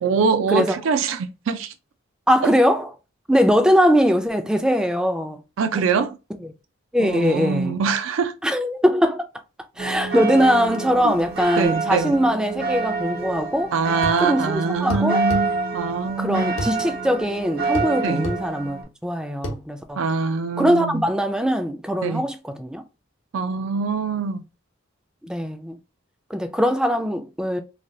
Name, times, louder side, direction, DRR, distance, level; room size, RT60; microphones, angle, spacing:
voice 1, 0.0-1.7 2.4-2.5 5.6-6.2 7.0-8.4 11.0-11.1 11.6-12.1 13.7-16.5 18.0-18.3 20.0-21.1 22.0-22.2 23.3-24.4, right 5 dB, 85° right, 0.4 m, -23 dB
voice 2, 2.3-2.9 3.3-5.4 6.9-7.8 8.4-9.3 9.8-13.7 14.2-15.2 16.2-20.0 20.6-22.8 25.2-25.8 26.3-27.6, equal, 5° right, 0.3 m, -21 dB
sound 1, 9.8-18.8, right 4 dB, 55° right, 0.8 m, -27 dB
sound 2, 14.0-14.2 14.9-15.5 16.6-16.8 17.7-17.9 18.2-18.4 19.4-19.6, equal, 75° left, 0.8 m, -28 dB
3.3 x 2.3 x 2.6 m
head